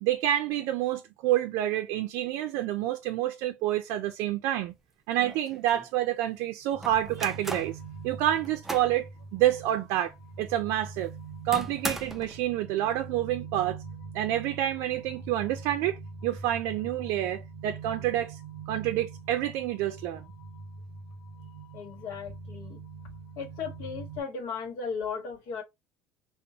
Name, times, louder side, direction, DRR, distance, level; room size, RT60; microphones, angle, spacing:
voice 1, 0.0-4.7 5.1-7.7 8.0-11.1 11.4-13.8 14.1-18.4 18.7-20.3, right 13 dB, 70° right, 0.5 m, -28 dB
sound 1, 4.7-4.8 5.1-5.9 6.8-7.8 8.3-9.0 9.5-9.6 10.0-10.1 11.5-12.4, right 2 dB, 5° right, 0.3 m, -38 dB
sound 2, 6.7-24.2, right 4 dB, 35° left, 1.2 m, -43 dB
voice 2, 21.7-22.8 23.4-25.6, left 5 dB, 80° left, 1.2 m, -36 dB
5.3 x 2.1 x 2.8 m
cardioid pair, 175°, 5 cm